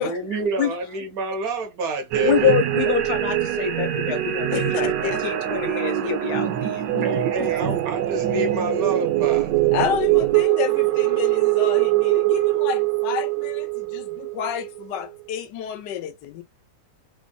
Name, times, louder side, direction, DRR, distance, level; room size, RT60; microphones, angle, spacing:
voice 1, 0.0-2.5 7.0-9.5, right 2 dB, 65° right, 1.1 m, -28 dB
sound 1, 2.1-14.8, right 15 dB, 90° right, 1.3 m, -23 dB
voice 2, 2.2-6.9, left 9 dB, 65° left, 1.3 m, -25 dB
voice 3, 4.5-5.2 6.9-7.1 7.4-7.8 9.7-16.4, left 9 dB, 85° left, 1.3 m, -30 dB
3.3 x 2.5 x 2.2 m
omnidirectional pair, 1.9 m